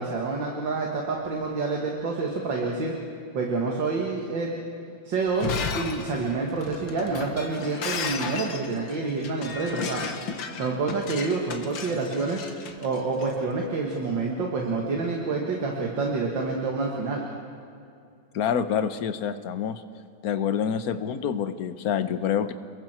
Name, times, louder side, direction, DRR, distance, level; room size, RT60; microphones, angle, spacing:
voice 1, 0.0-2.9 3.3-4.5 5.1-10.0 10.6-12.4 12.8-17.2, right 3 dB, 70° right, -1 dB, 2.6 m, -28 dB
Shatter, 5.3-13.3, left 5 dB, 75° left, 2.1 m, -34 dB
voice 2, 18.3-19.8 20.2-22.5, left 8 dB, 55° left, 11 dB, 1.3 m, -27 dB
29.5 x 21.5 x 4.5 m, 2.5 s
omnidirectional pair, 2.1 m